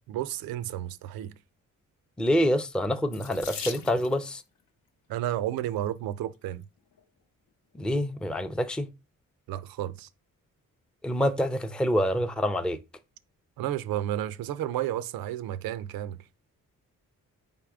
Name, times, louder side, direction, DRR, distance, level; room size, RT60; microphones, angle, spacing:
voice 1, 0.1-1.3 3.7-3.8 5.1-6.6 9.5-10.1 13.6-16.2, right 12 dB, 85° right, 0.5 m, -32 dB
voice 2, 2.2-4.4 7.8-8.9 11.0-12.8, equal, 5° left, 0.4 m, -26 dB
Water tap faucet / Sink (filling or washing), 3.1-4.4 5.4-5.8 6.5-6.6 6.9-7.0, left 6 dB, 75° left, 0.7 m, -40 dB
4.1 x 3.6 x 3.5 m
cardioid pair, 70°, 35 cm